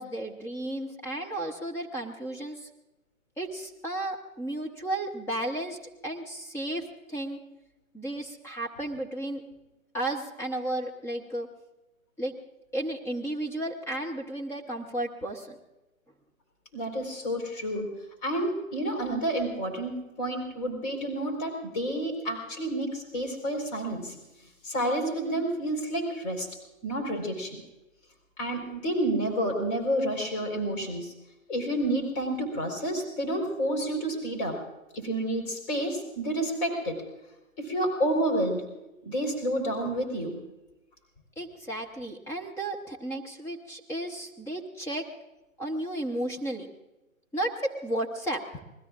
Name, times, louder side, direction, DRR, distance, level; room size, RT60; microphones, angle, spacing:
voice 1, 0.0-2.7 3.4-7.4 7.9-9.4 9.9-11.5 12.2-12.4 12.7-15.6 41.4-45.1 45.6-46.7 47.3-48.4, right 1 dB, 5° left, 1 dB, 0.9 m, -33 dB
voice 2, 16.7-17.9 18.2-24.1 24.6-26.5 26.8-27.6 28.4-31.1 31.5-34.6 34.9-37.0 37.6-38.6 39.0-40.4, right 1 dB, 30° left, 2 dB, 4.4 m, -29 dB
27.5 x 20.5 x 2.5 m, 1.0 s
figure-of-eight pair, 130°, 42 cm